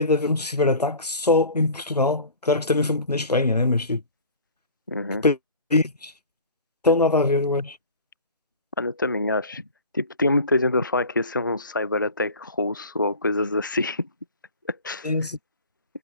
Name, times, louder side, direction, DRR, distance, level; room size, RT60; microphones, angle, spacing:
voice 1, 0.0-4.0 5.2-5.4 5.7-6.1 6.8-7.8 15.0-15.4, left 3 dB, 80° left, 1.1 m, -22 dB
voice 2, 4.9-5.2 8.8-9.6 9.9-14.1 14.7-15.1, left 2 dB, 30° left, 0.4 m, -25 dB
figure-of-eight pair, 160°, 20 cm